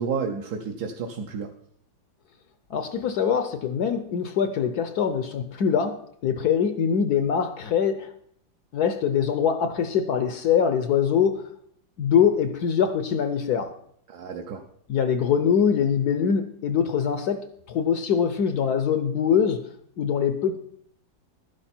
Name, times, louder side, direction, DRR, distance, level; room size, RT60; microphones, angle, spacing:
voice 1, 0.0-1.5 14.1-14.6, right 5 dB, 60° right, 1.3 m, -31 dB
voice 2, 2.7-8.1 8.7-11.5 12.0-13.7 14.9-19.7 20.0-20.6, left 7 dB, 65° left, 1.1 m, -23 dB
12.0 x 10.0 x 4.4 m
omnidirectional pair, 2.1 m